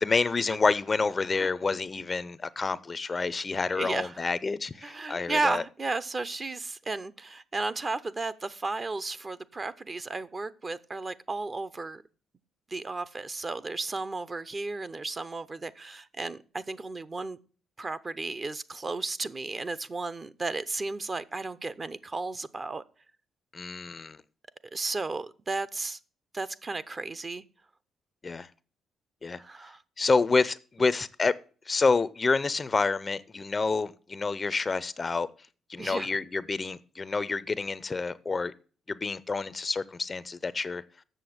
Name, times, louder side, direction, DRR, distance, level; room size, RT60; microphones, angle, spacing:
voice 1, 0.0-5.6 23.5-24.2 28.2-28.5 29.2-29.4 30.0-31.3 31.7-35.3 35.7-38.5 38.9-40.8, left 4 dB, 30° left, 0.5 m, -28 dB
voice 2, 3.7-4.3 4.8-12.0 12.7-17.4 17.8-22.8 24.7-26.0 26.3-27.4 29.4-29.8 35.8-36.1, right 3 dB, 30° right, 0.7 m, -34 dB
7.9 x 6.6 x 7.7 m
cardioid pair, 90°, 0 cm